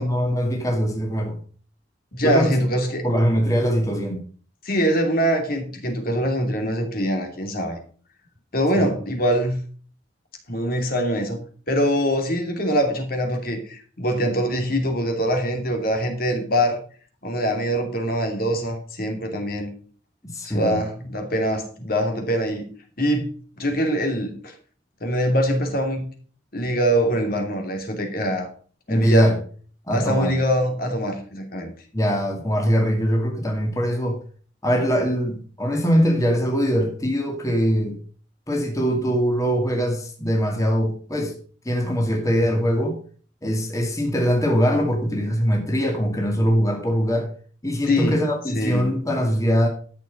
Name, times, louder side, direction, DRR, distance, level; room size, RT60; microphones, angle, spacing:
voice 1, 0.0-1.4 2.2-2.6 3.0-4.2 8.7-8.9 20.3-20.8 28.9-29.4 29.9-30.3 31.9-34.2 34.6-38.0 38.5-41.4 41.6-43.0 43.4-47.3 47.6-49.7, equal, 20° left, 2.2 m, -22 dB
voice 2, 2.1-3.1 4.6-7.8 8.5-9.6 10.5-11.4 11.7-16.8 17.2-19.7 20.4-22.7 23.0-23.3 23.6-24.5 25.0-26.0 26.5-28.5 28.9-29.3 29.9-31.7 47.9-48.2 48.5-48.9, equal, 50° left, 2.8 m, -23 dB
12.5 x 7.4 x 5.3 m
head